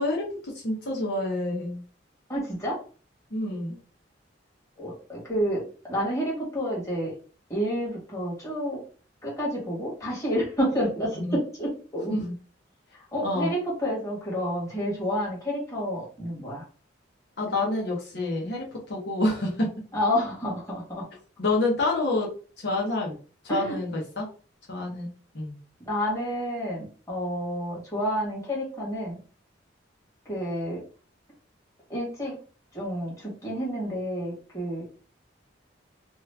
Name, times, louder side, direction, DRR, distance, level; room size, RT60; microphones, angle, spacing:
voice 1, 0.0-1.8 3.3-3.8 11.1-11.4 12.1-12.3 13.2-13.5 17.4-19.7 21.4-22.3 22.6-23.2 23.4-24.2 24.7-25.1 25.3-25.6, left 2 dB, 60° left, -2 dB, 0.8 m, -28 dB
voice 2, 2.3-2.8 4.8-5.6 5.9-7.1 7.5-8.8 9.2-12.1 13.1-16.6 19.9-21.0 23.5-23.7 25.8-29.2 30.3-30.8 31.9-32.3 32.7-34.9, equal, 15° left, -5 dB, 1.5 m, -29 dB
3.0 x 2.4 x 3.2 m, 0.39 s
head